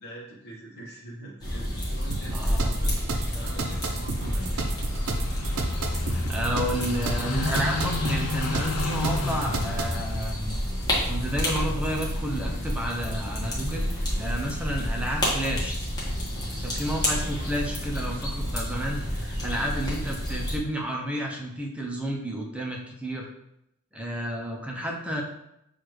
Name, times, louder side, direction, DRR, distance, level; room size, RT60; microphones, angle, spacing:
voice 1, 0.0-3.0 3.3-4.8 6.0-6.4 19.4-19.7, right 1 dB, 45° left, -4 dB, 1.1 m, -45 dB
sound 1, 1.4-20.6, equal, 20° left, 1.2 m, -30 dB
sound 2, 2.1-10.0, right 3 dB, 65° right, 0.6 m, -33 dB
voice 2, 2.3-2.7 6.1-10.6 11.1-15.7 16.6-23.3 23.9-25.2, equal, 5° right, 0 dB, 0.6 m, -31 dB
Car passing by / Idling, 3.6-14.2, left 3 dB, 65° left, 0.5 m, -34 dB
6.5 x 2.4 x 3.1 m, 0.82 s
head